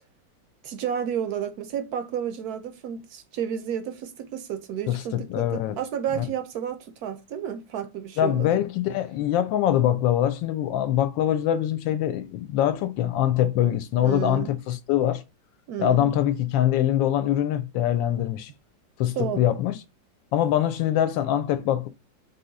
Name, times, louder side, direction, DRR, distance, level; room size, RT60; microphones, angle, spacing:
voice 1, 0.6-8.6 14.0-14.5 15.7-16.1 19.1-19.5, right 9 dB, 70° right, 0.9 m, -31 dB
voice 2, 4.9-5.8 6.1-6.2 8.2-15.2 15.8-18.5 19.0-19.8 20.3-21.9, left 11 dB, 80° left, 1.3 m, -23 dB
3.8 x 2.8 x 3.9 m
omnidirectional pair, 2.1 m